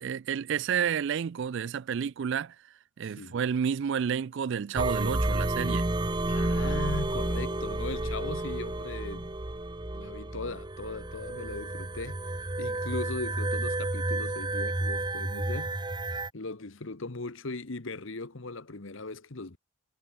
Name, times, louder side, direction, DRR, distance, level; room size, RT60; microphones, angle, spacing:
voice 1, 0.0-2.6 3.0-5.9, right 7 dB, 55° right, 0.3 m, -30 dB
sound 1, 4.8-16.3, right 2 dB, 20° right, 0.9 m, -31 dB
voice 2, 6.3-9.4 9.9-12.2 12.6-15.7 16.3-19.6, left 3 dB, 60° left, 1.2 m, -38 dB
head